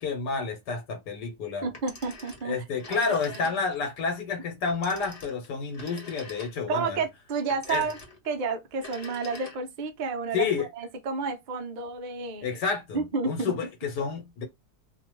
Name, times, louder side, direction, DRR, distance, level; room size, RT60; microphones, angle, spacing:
voice 1, 0.0-1.7 2.4-7.0 7.7-7.9 10.3-10.7 12.4-14.4, left 5 dB, 85° left, 1.5 m, -30 dB
voice 2, 1.6-2.6 3.1-3.2 6.7-8.0 8.3-12.6 12.9-13.5, right 4 dB, 55° right, 0.5 m, -31 dB
Telephone, 1.7-3.9 4.7-6.8 7.5-8.3 8.7-9.9, left 3 dB, 30° left, 0.7 m, -45 dB
2.9 x 2.4 x 3.0 m
omnidirectional pair, 1.7 m